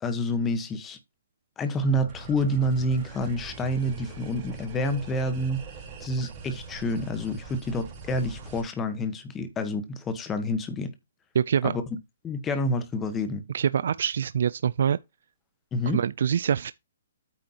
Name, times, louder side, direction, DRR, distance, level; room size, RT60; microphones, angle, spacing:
voice 1, 0.0-1.0 1.6-5.6 6.0-10.9 11.6-11.8 12.2-13.4 15.7-16.0, left 1 dB, 10° left, 1.2 m, -28 dB
sound 1, 1.8-8.6, right 4 dB, 20° right, 4.3 m, -42 dB
voice 2, 11.3-11.7 13.5-15.0 15.9-16.7, right 8 dB, 60° right, 0.4 m, -24 dB
9.0 x 7.5 x 2.9 m
hypercardioid pair, 165°, 0 cm